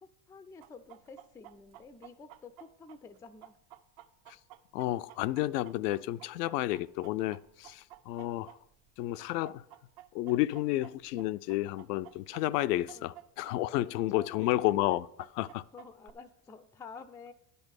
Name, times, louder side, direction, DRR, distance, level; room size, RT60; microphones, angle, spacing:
voice 1, 0.0-3.6 12.9-13.1 13.8-14.4 15.4-17.3, left 4 dB, 5° left, 0.3 m, -50 dB
Chicken rooster, 0.6-8.9 9.2-13.5 13.8-13.9 14.4-16.1, right 14 dB, 55° right, 0.8 m, -52 dB
voice 2, 4.7-8.6 9.0-9.6 10.1-15.6, left 16 dB, 80° left, 0.5 m, -31 dB
10.5 x 5.5 x 6.4 m
hypercardioid pair, 95°, 47 cm